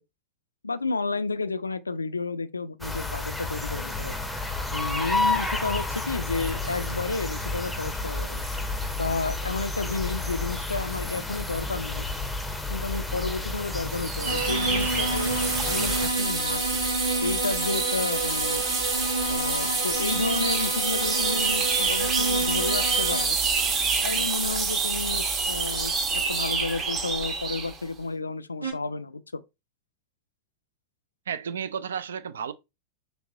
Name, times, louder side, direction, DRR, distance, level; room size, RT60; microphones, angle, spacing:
voice 1, 0.6-4.2 4.7-8.4 9.0-12.1 12.7-15.3 15.7-16.9 17.2-18.6 19.3-23.4 24.0-29.4, left 3 dB, 80° left, 0.4 m, -31 dB
sound 1, 2.8-16.1, left 2 dB, ahead, 0.7 m, -31 dB
sound 2, 13.9-27.8, right 5 dB, 25° right, 1.1 m, -27 dB
sound 3, 14.2-23.3 28.6-28.7, right 1 dB, 85° right, 1.4 m, -30 dB
voice 2, 31.3-32.5, right 7 dB, 65° right, 0.4 m, -32 dB
6.0 x 3.5 x 2.3 m
figure-of-eight pair, 90°, 0 cm